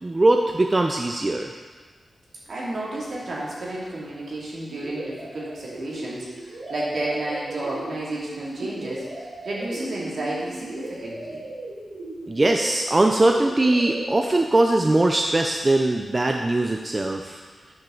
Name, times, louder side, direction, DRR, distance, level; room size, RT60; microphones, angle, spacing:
voice 1, 0.0-1.5 12.3-17.4, right 2 dB, 25° right, 3 dB, 0.4 m, -21 dB
voice 2, 2.5-11.4, right 1 dB, 65° right, -6 dB, 2.6 m, -31 dB
sound 1, 4.7-14.2, right 2 dB, 85° right, 2.7 m, -37 dB
9.4 x 7.3 x 3.9 m, 1.4 s
wide cardioid pair, 140°, 0 cm